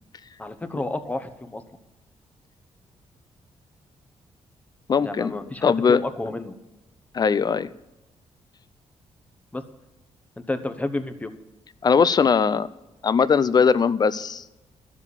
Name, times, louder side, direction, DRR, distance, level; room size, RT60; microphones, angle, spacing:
voice 1, 0.4-1.6 5.0-6.5 9.5-9.6 10.4-11.3, left 2 dB, 10° left, 9 dB, 0.9 m, -30 dB
voice 2, 4.9-6.0 7.1-7.7 11.8-12.7 13.0-14.4, left 6 dB, 35° left, 17 dB, 0.5 m, -20 dB
12.0 x 7.4 x 8.2 m, 1.0 s
cardioid pair, 130°, 12 cm